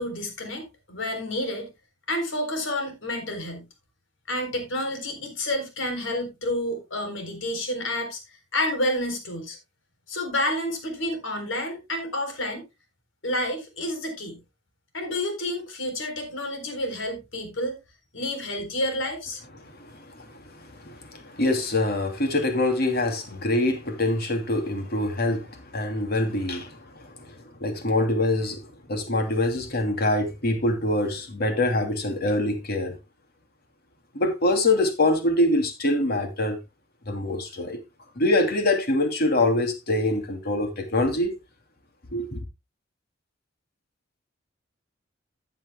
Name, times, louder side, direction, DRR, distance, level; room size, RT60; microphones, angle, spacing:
voice 1, 0.0-1.7 2.1-3.6 4.3-9.6 10.1-12.6 13.2-14.4 14.9-17.7 18.1-19.4, left 1 dB, 75° left, 4.0 m, -29 dB
voice 2, 19.8-28.6 28.9-33.0 34.1-36.6 37.1-37.8 38.2-41.3 42.1-42.4, left 1 dB, 55° left, 2.7 m, -25 dB
14.5 x 9.3 x 2.2 m
head